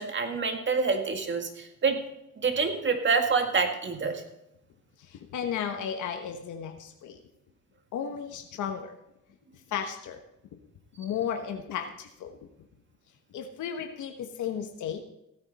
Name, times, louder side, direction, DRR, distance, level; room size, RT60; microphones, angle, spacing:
voice 1, 0.0-2.0 2.4-4.2, right 5 dB, 40° right, 5 dB, 2.1 m, -27 dB
voice 2, 5.0-7.2 7.9-8.9 9.7-10.2 11.0-12.4 13.3-15.0, left 8 dB, 75° left, 5 dB, 1.2 m, -34 dB
16.0 x 9.6 x 4.2 m, 0.86 s
cardioid pair, 90°, 30 cm